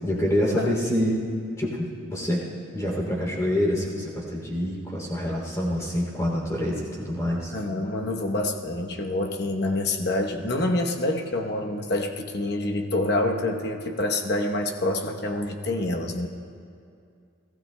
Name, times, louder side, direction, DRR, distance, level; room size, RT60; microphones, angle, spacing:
voice 1, 0.0-1.2 1.6-2.5 2.7-7.5, equal, 15° left, -2 dB, 2.9 m, -26 dB
voice 2, 7.5-16.3, left 2 dB, 55° left, 3 dB, 1.0 m, -27 dB
30.0 x 16.0 x 2.2 m, 2.4 s
head